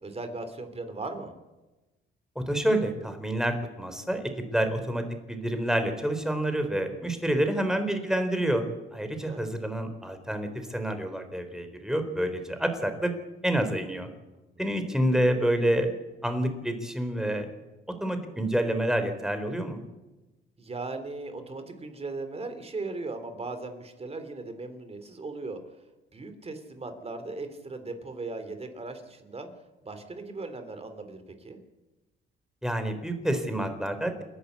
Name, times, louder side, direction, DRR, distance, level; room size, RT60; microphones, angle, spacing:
voice 1, 0.0-1.3 9.1-9.4 14.7-15.0 20.6-25.6 26.1-29.5 29.8-31.6, right 3 dB, 30° right, 8 dB, 3.4 m, -38 dB
voice 2, 2.4-8.6 8.9-13.1 13.4-14.1 14.6-15.9 16.2-17.5 18.0-19.8 32.6-34.2, right 1 dB, 5° right, 7 dB, 3.9 m, -28 dB
28.5 x 11.0 x 8.3 m, 1.1 s
cardioid pair, 90°, 20 cm